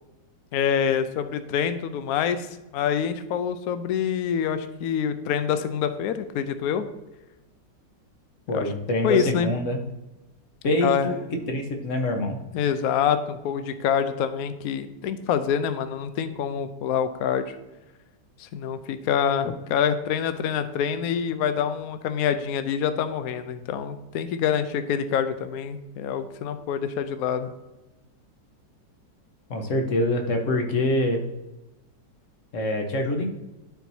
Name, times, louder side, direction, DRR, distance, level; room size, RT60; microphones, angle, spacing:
voice 1, 0.5-2.5 2.7-6.9 8.5-8.7 9.0-9.5 10.8-11.1 12.5-17.5 18.4-27.5, left 8 dB, 70° left, 10 dB, 0.9 m, -26 dB
voice 2, 8.5-9.8 10.6-11.2 11.5-12.4 29.5-31.2 32.5-33.3, left 1 dB, 50° left, 3 dB, 1.3 m, -25 dB
13.0 x 4.5 x 2.7 m, 1.0 s
omnidirectional pair, 2.0 m